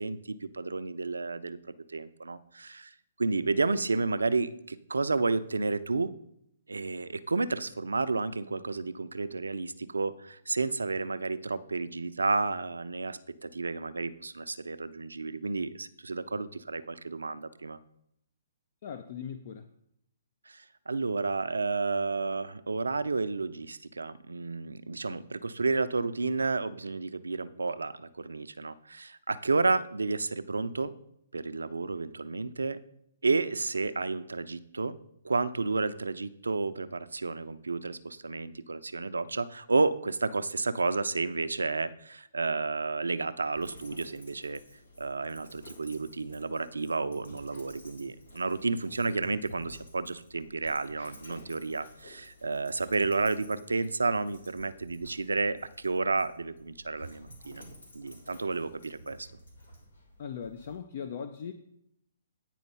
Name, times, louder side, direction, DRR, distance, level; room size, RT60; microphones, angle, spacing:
voice 1, 0.0-1.6 1.9-2.9 3.2-6.1 6.7-17.8 20.5-30.9 31.3-32.8 33.2-35.0 35.2-44.6 45.0-57.6 57.9-59.3, right 3 dB, 85° right, 13 dB, 0.5 m, -31 dB
voice 2, 18.8-19.7 60.2-61.5, left 7 dB, 50° left, 9 dB, 0.5 m, -39 dB
Dog, 43.5-60.8, equal, 80° left, 2.0 m, -52 dB
9.1 x 4.4 x 5.6 m, 0.77 s
hypercardioid pair, 135°, 0 cm